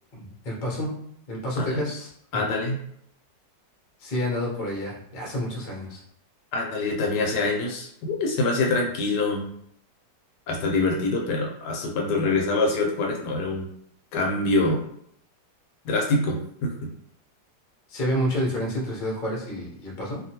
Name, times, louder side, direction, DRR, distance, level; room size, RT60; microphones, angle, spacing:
voice 1, 0.1-0.9 1.3-2.4 4.0-6.0 17.9-20.2, equal, 40° left, -3 dB, 0.7 m, -29 dB
voice 2, 2.3-2.8 6.5-9.5 10.5-13.7 14.1-14.8 15.8-16.9, left 2 dB, 75° left, -1 dB, 1.2 m, -25 dB
2.8 x 2.5 x 2.8 m, 0.68 s
omnidirectional pair, 1.9 m